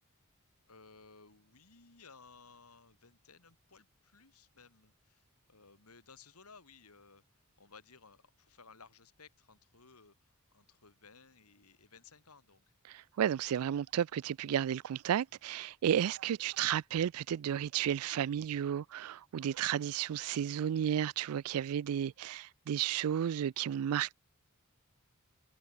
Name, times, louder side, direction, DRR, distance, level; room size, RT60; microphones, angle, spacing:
voice 1, 0.7-7.2 7.6-12.7, left 4 dB, 85° left, 3.4 m, -59 dB
voice 2, 12.9-24.1, right 9 dB, 75° right, 0.3 m, -33 dB
head